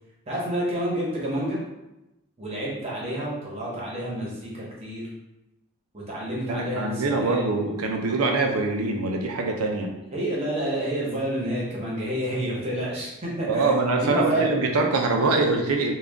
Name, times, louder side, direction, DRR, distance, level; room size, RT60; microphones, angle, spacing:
voice 1, 0.3-1.6 2.4-5.1 5.9-7.4 10.1-14.5, right 1 dB, 30° right, -5 dB, 1.0 m, -29 dB
voice 2, 6.5-9.9 13.5-15.9, right 3 dB, 90° right, 2 dB, 0.6 m, -24 dB
3.7 x 2.3 x 3.5 m, 0.96 s
head